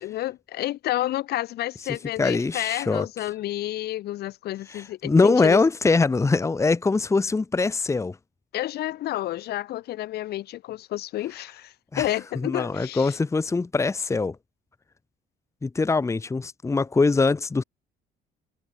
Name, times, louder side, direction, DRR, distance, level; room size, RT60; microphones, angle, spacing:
voice 1, 0.0-5.6 8.5-13.2, left 14 dB, 70° left, 2.1 m, -30 dB
voice 2, 2.2-3.1 4.7-8.2 11.9-12.1 12.4-14.4 15.6-17.6, left 3 dB, 15° left, 1.2 m, -22 dB
cardioid pair, 110°, 17 cm